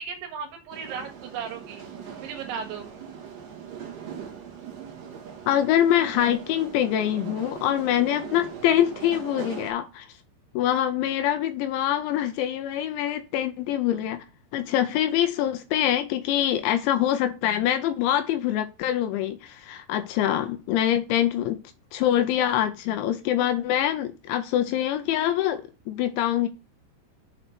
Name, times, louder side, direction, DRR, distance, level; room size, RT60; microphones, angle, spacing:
voice 1, 0.0-1.8 2.2-2.9, right 6 dB, 75° right, 3.8 m, -35 dB
sound 1, 0.7-9.7, right 7 dB, 55° right, 2.8 m, -40 dB
voice 2, 5.5-10.1 10.6-14.3 14.5-21.6 21.9-25.6 25.9-26.5, left 11 dB, 85° left, 2.8 m, -24 dB
7.8 x 4.4 x 5.9 m
omnidirectional pair, 5.6 m